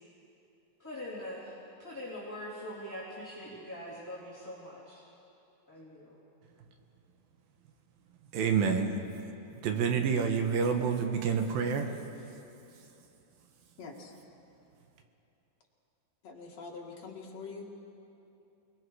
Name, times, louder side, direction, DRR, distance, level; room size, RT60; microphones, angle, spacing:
voice 1, 0.8-5.1 5.7-6.2, left 1 dB, 5° left, -9 dB, 3.0 m, -43 dB
voice 2, 8.3-8.9 9.6-11.9, right 6 dB, 70° right, 5 dB, 2.9 m, -28 dB
voice 3, 13.8-14.1 16.2-17.6, left 4 dB, 45° left, -1 dB, 3.0 m, -44 dB
28.5 x 20.5 x 4.9 m, 2.9 s
omnidirectional pair, 4.5 m